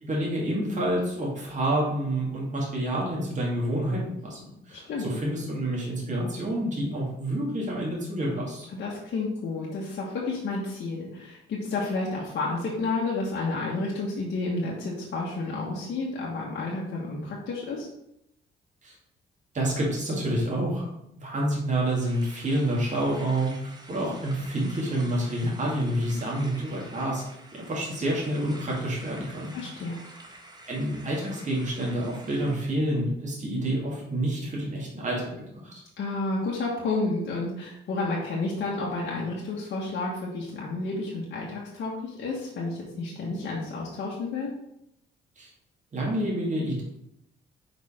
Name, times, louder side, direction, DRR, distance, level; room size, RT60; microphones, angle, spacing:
voice 1, 0.0-8.7 18.8-19.0 19.5-20.9 21.2-27.2 27.5-29.5 30.7-35.3 35.6-35.8 45.4-45.5 45.9-46.8, right 1 dB, 40° right, -4 dB, 2.2 m, -28 dB
voice 2, 4.7-5.1 8.7-17.9 29.5-30.0 36.0-44.5, left 3 dB, 65° left, -5 dB, 1.4 m, -31 dB
sound 1, 21.8-32.8, right 2 dB, 20° right, 1.1 m, -48 dB
5.1 x 4.0 x 5.0 m, 0.81 s
cardioid pair, 90°, 20 cm